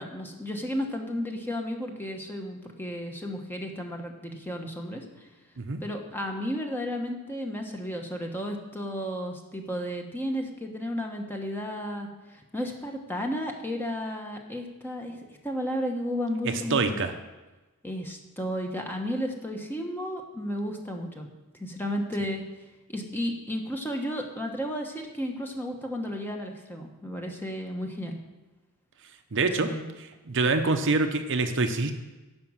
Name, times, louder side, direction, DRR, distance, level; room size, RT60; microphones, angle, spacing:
voice 1, 0.0-5.3 5.8-17.0 17.8-21.3 21.5-22.4 22.9-28.2 29.6-29.9, equal, 10° left, 2 dB, 1.1 m, -33 dB
voice 2, 16.4-17.1 29.3-29.7 30.3-31.9, right 3 dB, 55° right, 6 dB, 0.8 m, -25 dB
11.0 x 5.3 x 7.4 m, 1.1 s
head